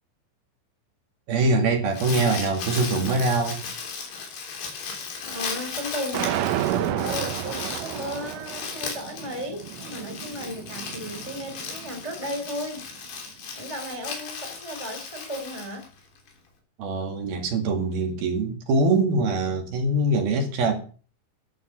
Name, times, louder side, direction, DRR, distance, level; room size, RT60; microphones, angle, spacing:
voice 1, 1.3-3.6 16.8-20.7, right 2 dB, 55° right, 3 dB, 3.6 m, -23 dB
Crumpling crinkling, 1.7-16.3, left 5 dB, 65° left, 5.6 m, -36 dB
voice 2, 5.2-12.8 13.6-15.9, equal, 15° left, 4 dB, 1.2 m, -35 dB
sound 1, 6.1-12.3, right 13 dB, 80° right, 3.3 m, -31 dB
13.0 x 11.5 x 5.9 m, 0.39 s
omnidirectional pair, 5.7 m